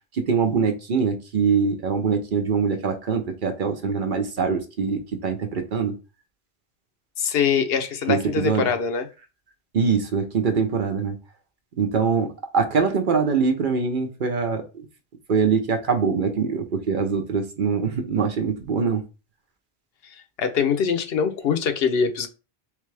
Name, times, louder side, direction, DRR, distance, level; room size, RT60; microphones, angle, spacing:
voice 1, 0.1-5.9 8.1-8.7 9.7-11.2 11.8-14.9 15.3-19.0, right 5 dB, 55° right, 0.8 m, -23 dB
voice 2, 7.2-9.1 20.0-22.3, left 6 dB, 70° left, 0.8 m, -23 dB
3.5 x 3.3 x 3.3 m
omnidirectional pair, 1.1 m